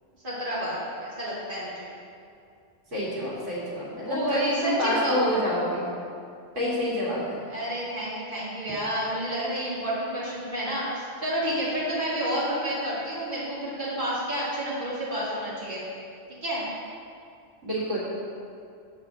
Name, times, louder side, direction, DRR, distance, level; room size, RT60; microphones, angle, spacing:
voice 1, 0.2-1.9 4.0-5.2 7.5-15.8 16.4-16.6, equal, 45° right, -9 dB, 2.4 m, -30 dB
voice 2, 2.9-5.9 6.6-7.4 17.6-18.0, equal, 85° right, -8 dB, 2.5 m, -28 dB
8.8 x 4.4 x 6.7 m, 2.4 s
omnidirectional pair, 1.2 m